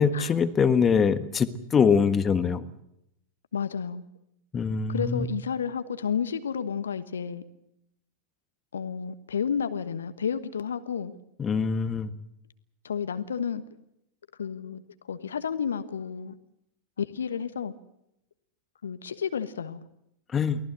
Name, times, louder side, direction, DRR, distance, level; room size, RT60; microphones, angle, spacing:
voice 1, 0.0-2.7 4.5-5.3 11.4-12.1 20.3-20.6, left 6 dB, 20° left, 12 dB, 1.4 m, -23 dB
voice 2, 3.5-4.0 4.9-7.4 8.7-11.2 12.8-13.6 14.4-16.3 17.0-17.7 18.8-19.8 20.5-20.6, left 7 dB, 70° left, 12 dB, 1.3 m, -31 dB
23.5 x 18.0 x 7.8 m, 0.78 s
figure-of-eight pair, 90°, 0 cm